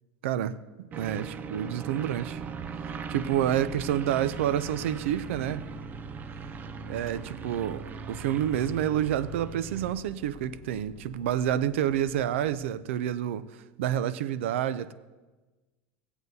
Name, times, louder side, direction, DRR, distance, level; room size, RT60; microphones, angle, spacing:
voice 1, 0.2-2.4 3.1-5.6 6.9-13.4 13.8-14.9, right 10 dB, 90° right, 15 dB, 0.4 m, -29 dB
sound 1, 0.9-9.9, right 6 dB, 25° right, 0.5 m, -39 dB
sound 2, 2.3-12.6, equal, 5° left, 1.5 m, -49 dB
17.5 x 7.9 x 2.7 m, 1.2 s
supercardioid pair, 130°, 6 cm